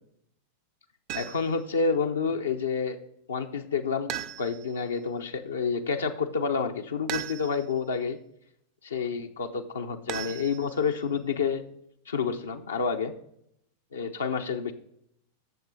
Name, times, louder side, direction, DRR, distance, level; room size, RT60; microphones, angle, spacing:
voice 1, 1.1-3.0 3.3-4.1 4.4-8.2 8.8-11.6 12.1-13.1 13.9-14.7, left 5 dB, 70° left, 4 dB, 0.8 m, -29 dB
sound 1, 1.1-1.6 4.1-4.8 7.1-7.8 10.1-11.0, right 12 dB, 40° right, 0.6 m, -37 dB
10.5 x 7.3 x 3.8 m, 0.73 s
figure-of-eight pair, 90°, 0 cm